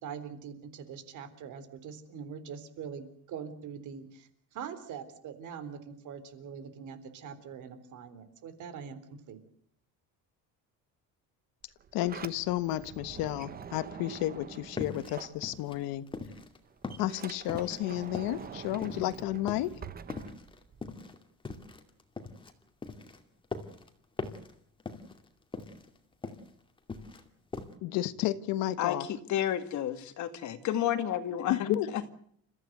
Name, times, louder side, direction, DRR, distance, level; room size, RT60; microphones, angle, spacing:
voice 1, 0.0-9.4, right 7 dB, 55° right, 3.8 m, -43 dB
Sliding door, 11.6-16.0 16.3-21.0, right 7 dB, 25° right, 1.1 m, -46 dB
voice 2, 11.9-16.0 17.0-19.7 27.8-29.0 31.5-31.9, left 14 dB, 75° left, 1.5 m, -32 dB
sound 1, 14.8-16.6 16.8-19.2 19.5-19.8 20.1-22.5 22.8-23.9 24.2-24.5 24.8-25.3 25.5-26.5 26.8-27.3 27.5-27.7, left 3 dB, 15° left, 2.4 m, -41 dB
voice 3, 28.8-32.0, left 11 dB, 50° left, 2.1 m, -31 dB
29.5 x 15.0 x 8.0 m
cardioid pair, 160°, 36 cm